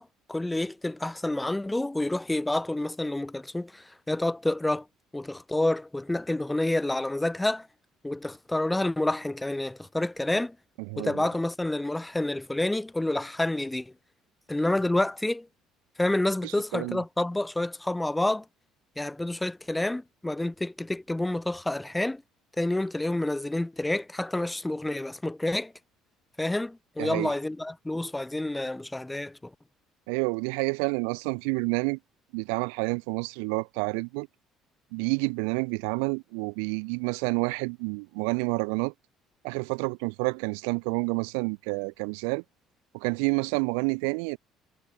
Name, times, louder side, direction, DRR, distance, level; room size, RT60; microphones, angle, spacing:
voice 1, 0.0-4.9 5.1-7.7 8.0-10.6 11.0-13.9 14.5-15.5 16.0-18.4 19.0-22.2 22.6-25.7 26.4-29.5, left 1 dB, 10° left, 4.0 m, -28 dB
voice 2, 10.9-11.2 16.4-17.0 27.0-27.3 30.1-32.0 32.3-34.3 34.9-38.9 39.4-42.4 42.9-44.4, right 40 dB or more, 85° right, 1.3 m, -29 dB
supercardioid pair, 70°, 0 cm